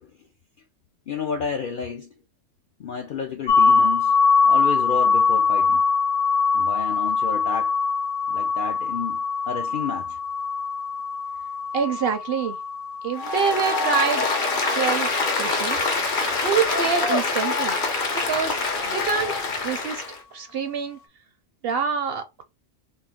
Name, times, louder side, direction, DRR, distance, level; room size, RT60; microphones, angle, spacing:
voice 1, 1.1-2.1 2.8-4.1 4.4-5.8 6.5-7.7 8.3-9.2 9.5-10.2, left 6 dB, 65° left, 0.5 m, -31 dB
sound 1, 3.5-15.2, left 5 dB, 85° left, 1.2 m, -23 dB
voice 2, 11.7-12.6 13.0-14.3 14.6-15.1 15.4-15.9 16.4-17.8 18.1-18.6 18.9-19.4 19.6-20.0 20.3-21.0 21.6-22.4, right 7 dB, 60° right, 0.7 m, -26 dB
Applause, 13.2-20.2, left 3 dB, 45° left, 0.9 m, -25 dB
3.2 x 2.8 x 3.5 m
omnidirectional pair, 1.4 m